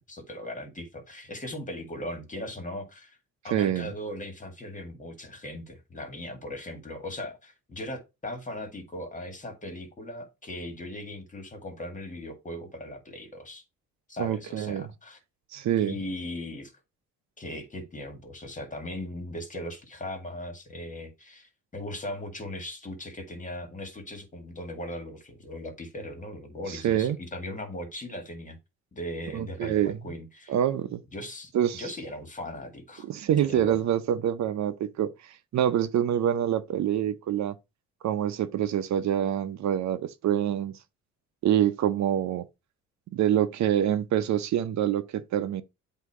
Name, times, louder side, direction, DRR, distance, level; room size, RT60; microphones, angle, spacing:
voice 1, 0.1-3.2 3.4-13.6 14.1-15.2 15.8-16.7 17.4-28.6 28.9-30.5 31.1-33.1 33.4-33.8, left 1 dB, 25° left, 2.1 m, -38 dB
voice 2, 3.5-3.9 14.2-14.9 15.5-15.9 26.7-27.2 29.3-30.0 30.5-31.0 31.5-31.8 33.0-37.6 38.0-40.8 41.4-42.5 43.1-45.6, right 10 dB, 65° right, 0.7 m, -26 dB
8.2 x 2.8 x 4.9 m
cardioid pair, 90°, 30 cm